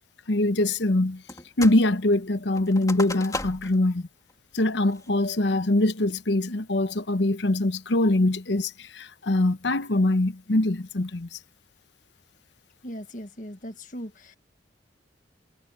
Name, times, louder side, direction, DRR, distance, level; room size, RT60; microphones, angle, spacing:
voice 1, 0.3-1.2 1.6-4.1 4.5-11.4, left 1 dB, 75° left, 1.0 m, -23 dB
sound 1, 1.3-1.9 2.1-3.8 4.3-4.4 4.9-5.3 5.8-6.2, left 2 dB, 20° left, 3.0 m, -36 dB
voice 2, 12.8-14.4, equal, 45° left, 1.7 m, -39 dB
head